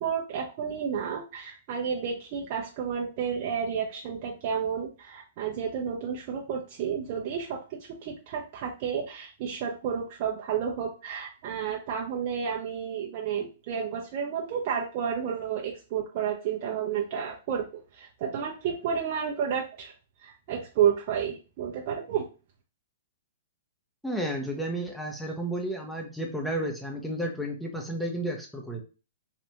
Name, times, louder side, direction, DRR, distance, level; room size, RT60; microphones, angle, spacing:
voice 1, 0.0-19.9 20.2-22.2, right 7 dB, 45° right, -2 dB, 0.6 m, -31 dB
voice 2, 24.0-28.8, right 1 dB, ahead, 1 dB, 0.6 m, -32 dB
3.3 x 2.5 x 2.9 m, 0.33 s
hypercardioid pair, 115°, 0 cm